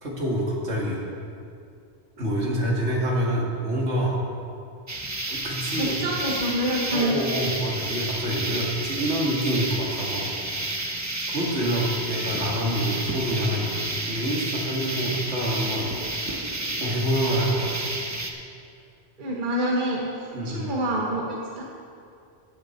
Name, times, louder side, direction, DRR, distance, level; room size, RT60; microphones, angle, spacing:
voice 1, 0.0-1.0 2.2-4.2 5.3-6.0 6.9-10.3 10.7-11.0 11.3-15.9 16.6-17.9 20.3-20.7, equal, 70° right, -3 dB, 2.4 m, -27 dB
sound 1, 4.9-18.3, right 2 dB, 15° right, 0.7 m, -31 dB
voice 2, 5.8-7.2 19.2-21.6, right 1 dB, 45° right, -2 dB, 1.4 m, -27 dB
13.5 x 9.5 x 4.5 m, 2.4 s
omnidirectional pair, 1.2 m